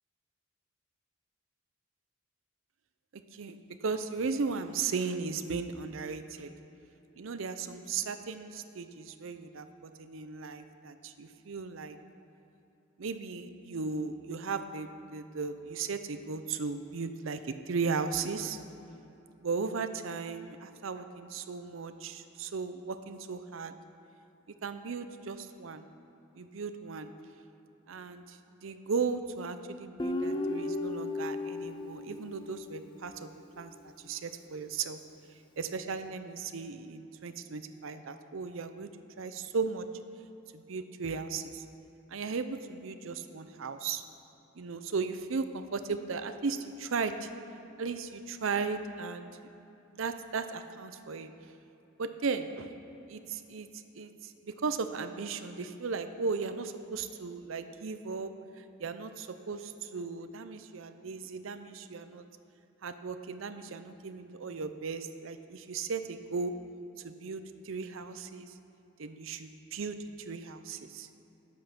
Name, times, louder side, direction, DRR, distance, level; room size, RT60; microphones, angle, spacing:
voice 1, 3.1-6.5 7.2-12.0 13.0-18.6 19.4-23.7 24.6-25.8 26.4-27.1 27.9-33.3 33.6-35.0 35.6-38.9 39.2-39.8 40.5-41.6 42.1-44.0 44.6-47.3 47.8-49.3 49.9-51.3 52.0-52.7 53.1-53.7 53.9-62.3 62.8-66.5 67.0-68.5 69.0-71.1, right 5 dB, 75° right, 9 dB, 0.6 m, -36 dB
Guitar, 30.0-33.3, left 2 dB, 25° left, 0.5 m, -35 dB
10.5 x 8.5 x 5.9 m, 3.0 s
head